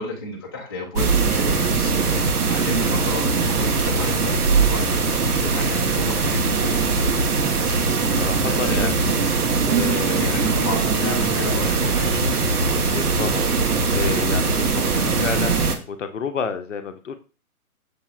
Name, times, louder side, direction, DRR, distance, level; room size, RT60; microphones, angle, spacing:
voice 1, 0.0-5.2 5.4-7.0 8.5-8.9 10.0-12.4, left 2 dB, 15° left, -4 dB, 0.5 m, -33 dB
sound 1, 0.9-15.8, right 4 dB, 80° right, 1.0 m, -21 dB
voice 2, 8.2-9.2 9.6-10.4 12.9-17.2, left 6 dB, 55° left, 9 dB, 0.7 m, -30 dB
6.7 x 3.0 x 2.3 m, 0.35 s
figure-of-eight pair, 145°, 45 cm